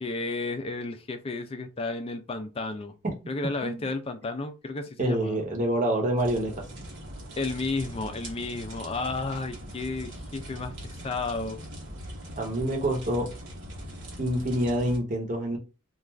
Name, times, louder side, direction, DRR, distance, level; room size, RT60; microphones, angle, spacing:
voice 1, 0.0-2.9 3.3-5.4 7.4-11.6, left 3 dB, 30° left, 0.4 m, -32 dB
voice 2, 5.0-6.5 12.4-13.3 14.2-15.6, right 1 dB, 40° right, 0.8 m, -26 dB
sound 1, 6.2-15.0, equal, 65° right, 1.0 m, -41 dB
2.4 x 2.3 x 3.2 m
head